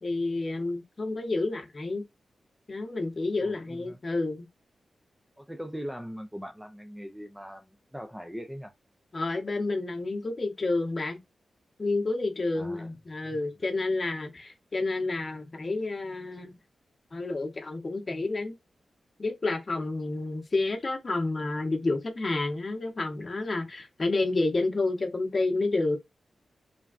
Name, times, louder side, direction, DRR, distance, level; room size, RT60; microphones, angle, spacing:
voice 1, 0.0-2.0 2.7-4.5 9.1-11.2 11.8-16.6 17.1-18.5 19.2-26.0, left 2 dB, 45° left, 0.8 m, -29 dB
voice 2, 3.4-4.0 5.4-8.7 12.6-12.9 13.3-13.4, equal, 5° right, 0.4 m, -40 dB
3.3 x 2.3 x 2.4 m
cardioid pair, 55°, 0 cm